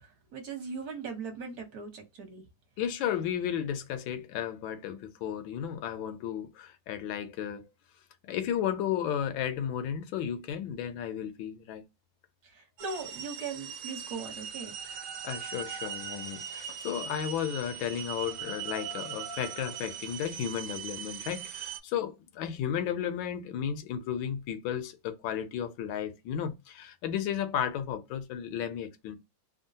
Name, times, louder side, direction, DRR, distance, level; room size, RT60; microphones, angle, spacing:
voice 1, 0.3-2.4 12.5-14.7, right 5 dB, 55° right, 1.5 m, -39 dB
voice 2, 2.8-7.6 8.3-11.8 14.9-29.2, left 9 dB, 85° left, 1.4 m, -34 dB
sound 1, 12.8-21.8, right 9 dB, 85° right, 1.5 m, -40 dB
3.6 x 2.2 x 2.6 m
omnidirectional pair, 2.1 m